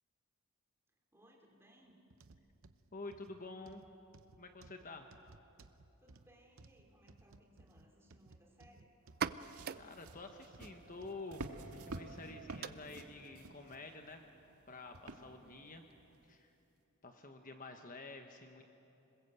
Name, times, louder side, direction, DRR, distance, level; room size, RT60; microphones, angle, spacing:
voice 1, 0.9-2.0 6.0-9.0, equal, 10° right, 1 dB, 2.9 m, -65 dB
sound 1, 2.1-11.2 11.8-11.9 12.6-12.7, right 3 dB, 65° right, 0.8 m, -61 dB
voice 2, 2.9-3.8 4.4-5.1 9.8-11.5 11.7-14.2 14.7-15.8 16.3-16.5 17.0-18.6, left 3 dB, 40° left, 5 dB, 1.1 m, -49 dB
sound 2, 9.0-16.5, right 7 dB, 45° right, 0.5 m, -48 dB
sound 3, 9.4-14.1 14.9-15.5 16.1-16.2, right 2 dB, 85° right, 1.6 m, -49 dB
26.5 x 21.0 x 8.2 m, 2.8 s
head